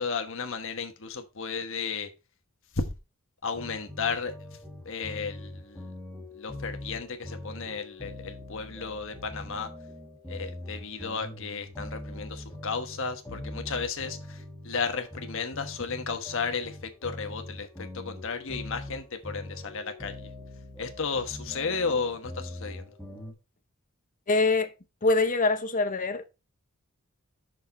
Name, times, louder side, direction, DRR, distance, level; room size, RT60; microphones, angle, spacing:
voice 1, 0.0-2.1 2.7-2.8 3.4-4.3 4.8-5.9 6.3-9.7 10.3-20.3 20.8-22.8, left 5 dB, 60° left, 1.2 m, -33 dB
sound 1, 3.5-23.3, left 1 dB, 5° left, 1.8 m, -42 dB
voice 2, 24.3-24.7 25.0-26.2, left 3 dB, 40° left, 0.7 m, -24 dB
6.4 x 6.0 x 4.2 m
head